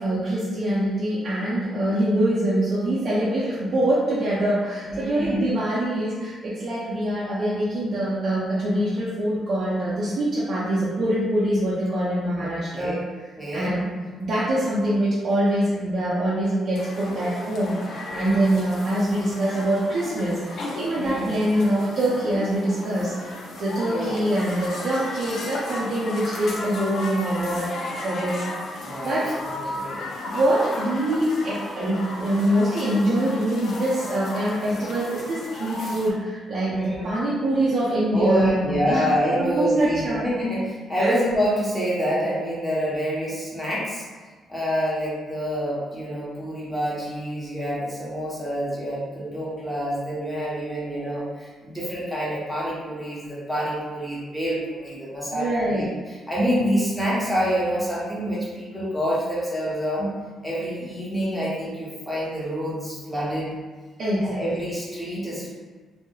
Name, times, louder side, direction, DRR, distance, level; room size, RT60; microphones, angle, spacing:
voice 1, 0.0-13.0 13.5-13.9 14.2-29.3 30.3-39.1 39.4-40.3 41.0-41.1 55.3-55.9 64.0-64.4, right 1 dB, 55° right, -8 dB, 0.5 m, -24 dB
voice 2, 4.9-5.5 12.4-12.9 13.4-13.7 18.1-18.5 20.9-21.3 23.9-24.1 28.8-30.1 36.7-37.1 38.1-44.0 44.5-60.1 60.4-63.5 64.2-65.5, equal, 5° left, -7 dB, 0.9 m, -27 dB
sound 1, 16.7-36.1, left 2 dB, 65° left, 0.4 m, -35 dB
2.2 x 2.0 x 3.0 m, 1.4 s
cardioid pair, 90°, 0 cm